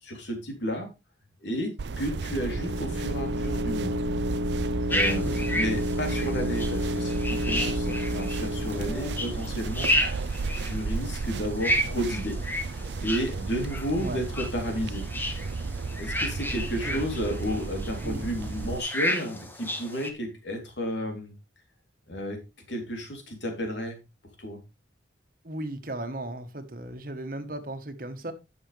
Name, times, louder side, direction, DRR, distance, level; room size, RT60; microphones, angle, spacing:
voice 1, 0.0-0.9 1.4-4.0 4.6-10.0 10.6-12.4 12.7-15.1 16.0-21.3 22.1-22.4 22.7-24.0 24.4-24.6, equal, 75° left, 3.4 m, -32 dB
sound 1, 1.8-18.8, right 4 dB, 70° right, 0.5 m, -34 dB
sound 2, 1.9-9.6, equal, 90° right, 1.2 m, -31 dB
sound 3, 4.9-20.1, left 1 dB, 10° left, 1.2 m, -32 dB
voice 2, 5.1-5.4 14.0-14.2 16.6-17.1 18.0-18.3 25.4-28.3, right 1 dB, 50° right, 1.4 m, -36 dB
12.0 x 7.3 x 3.4 m
head